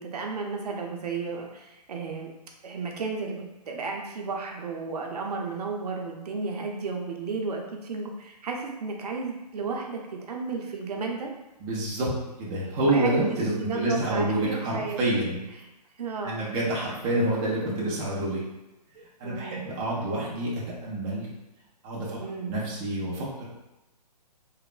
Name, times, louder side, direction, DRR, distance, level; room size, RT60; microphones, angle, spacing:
voice 1, 0.0-2.3 2.6-11.3 12.8-15.0 16.0-16.4 19.0-19.6 22.1-22.5, right 4 dB, 70° right, 1 dB, 0.6 m, -33 dB
voice 2, 11.6-12.1 12.4-15.4 16.2-18.4 19.2-21.3 21.8-22.2 22.5-23.5, right 1 dB, 15° right, -6 dB, 0.3 m, -27 dB
3.1 x 2.0 x 2.4 m, 1.0 s
hypercardioid pair, 145°, 21 cm